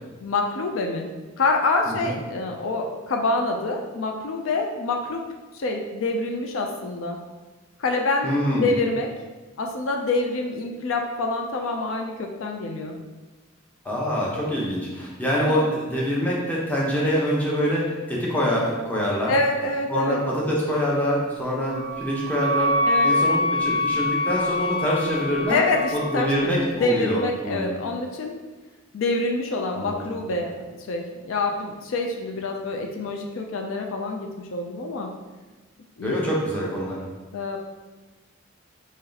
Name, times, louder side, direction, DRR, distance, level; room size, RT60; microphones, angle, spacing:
voice 1, 0.2-1.1 1.4-5.2 5.5-7.2 7.8-9.1 9.6-12.9 19.3-20.2 22.9-23.1 25.5-28.3 28.9-35.1 36.0-36.2 37.3-37.6, left 3 dB, 75° left, 3 dB, 0.4 m, -26 dB
voice 2, 8.2-8.7 13.8-19.3 19.9-25.6 25.9-27.7 29.7-30.0 36.0-37.0, equal, 10° left, -5 dB, 0.8 m, -25 dB
Wind instrument woodwind instrument, 21.7-26.5, left 1 dB, 30° right, 0.4 m, -25 dB
3.1 x 2.8 x 3.9 m, 1.2 s
head